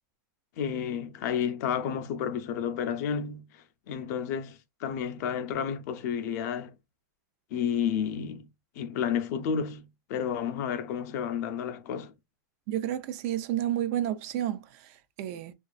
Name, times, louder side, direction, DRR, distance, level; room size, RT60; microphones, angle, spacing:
voice 1, 0.6-6.7 7.5-8.5 8.8-12.1, left 8 dB, 60° left, 0.4 m, -31 dB
voice 2, 12.7-14.6 15.2-15.5, right 12 dB, 50° right, 0.4 m, -30 dB
2.4 x 2.3 x 2.3 m
supercardioid pair, 140°, 10 cm